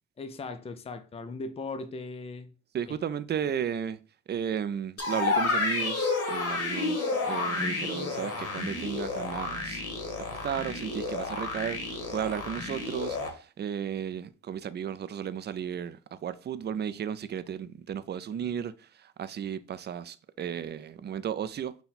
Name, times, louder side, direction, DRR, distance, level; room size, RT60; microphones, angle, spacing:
voice 1, 0.2-2.5, left 3 dB, 20° left, 0.5 m, -38 dB
voice 2, 2.7-4.0 4.3-9.8 10.4-21.7, right 8 dB, 35° right, 0.4 m, -34 dB
sound 1, 5.0-13.3, left 3 dB, 55° left, 1.4 m, -31 dB
5.7 x 2.3 x 4.2 m
cardioid pair, 90°, 30 cm